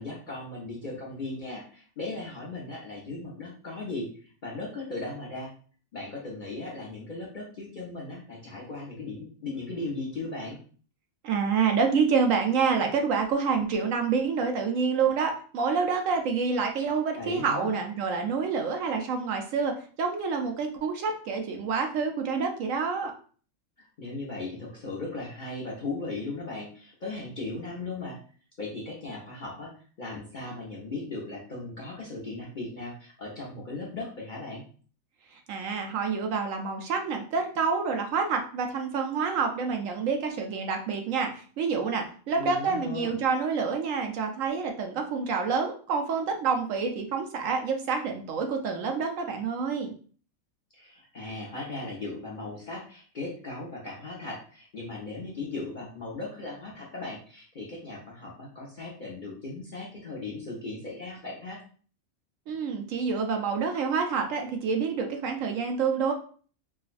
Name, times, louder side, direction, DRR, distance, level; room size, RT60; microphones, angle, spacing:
voice 1, 0.0-5.5 5.9-10.6 17.1-17.7 23.8-28.2 28.6-34.6 42.3-43.1 50.7-61.6, left 2 dB, 45° left, -4 dB, 0.7 m, -37 dB
voice 2, 11.2-23.1 35.5-49.9 62.5-66.1, right 5 dB, 70° right, 4 dB, 0.9 m, -27 dB
4.6 x 2.1 x 2.5 m, 0.43 s
omnidirectional pair, 1.5 m